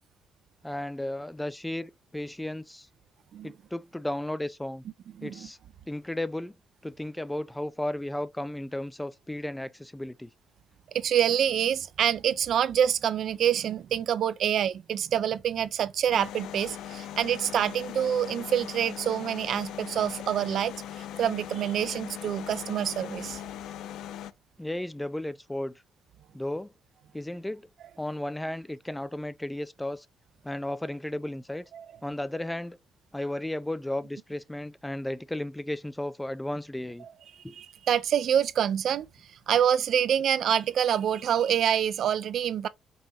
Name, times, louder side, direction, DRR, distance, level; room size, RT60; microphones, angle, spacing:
voice 1, 0.6-2.9 3.4-4.8 5.2-5.6 5.9-6.5 6.8-10.3 24.6-25.8 26.3-26.7 27.1-27.7 28.0-30.1 30.4-31.6 32.0-32.8 33.1-37.0 37.4-37.5, left 1 dB, 10° left, 0.3 m, -34 dB
voice 2, 5.2-5.5 10.9-20.7 21.2-23.4 31.7-31.9 37.6-39.1 39.5-42.7, right 9 dB, 70° right, 0.3 m, -26 dB
sound 1, 16.1-24.3, left 11 dB, 85° left, 0.3 m, -40 dB
5.4 x 2.9 x 2.8 m
cardioid pair, 90°, 0 cm